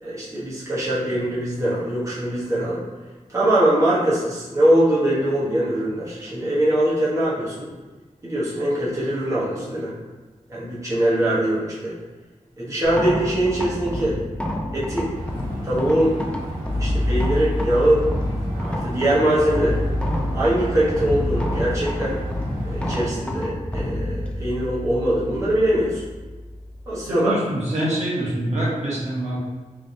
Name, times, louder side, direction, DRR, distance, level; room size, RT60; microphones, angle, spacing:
voice 1, 0.0-2.8 3.3-7.7 8.2-9.9 10.5-11.9 12.6-14.2 14.7-15.1 15.6-16.1 16.7-18.1 18.5-19.8 20.3-22.2 22.6-26.0 26.9-27.3, right 1 dB, 25° right, -9 dB, 1.0 m, -22 dB
sound 1, 12.8-27.1, left 1 dB, 10° left, 0.4 m, -27 dB
sound 2, 15.1-23.0, right 1 dB, 80° right, 1.2 m, -35 dB
voice 2, 27.1-29.4, right 1 dB, 60° right, -7 dB, 1.2 m, -25 dB
3.9 x 3.3 x 2.6 m, 1.3 s
wide cardioid pair, 105°, 13 cm